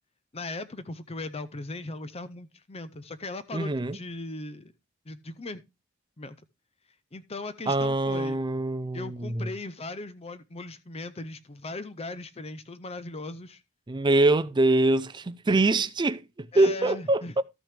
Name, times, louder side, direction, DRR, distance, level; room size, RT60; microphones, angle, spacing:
voice 1, 0.3-4.7 5.1-5.6 6.2-6.4 7.1-8.4 8.9-13.6 16.5-17.4, left 2 dB, 25° left, 0.6 m, -38 dB
voice 2, 3.5-4.0 7.7-9.5 13.9-17.4, right 2 dB, 20° right, 0.4 m, -24 dB
13.5 x 6.0 x 3.4 m
head